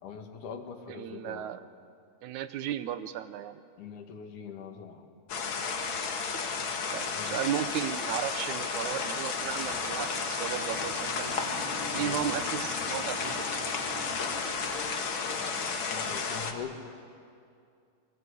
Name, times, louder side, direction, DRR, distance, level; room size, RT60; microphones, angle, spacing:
voice 1, 0.0-1.5 3.8-5.0 7.1-7.4 11.9-12.3 15.3-16.8, left 7 dB, 80° left, 4 dB, 3.3 m, -42 dB
voice 2, 0.9-1.6 2.2-3.6 6.9-11.3 11.9-13.5, right 11 dB, 80° right, 12 dB, 2.2 m, -35 dB
sound 1, 5.3-16.5, left 5 dB, 45° left, 2.0 m, -33 dB
sound 2, 9.4-15.0, equal, 5° right, 4.3 m, -42 dB
27.5 x 21.0 x 8.4 m, 2.4 s
omnidirectional pair, 3.5 m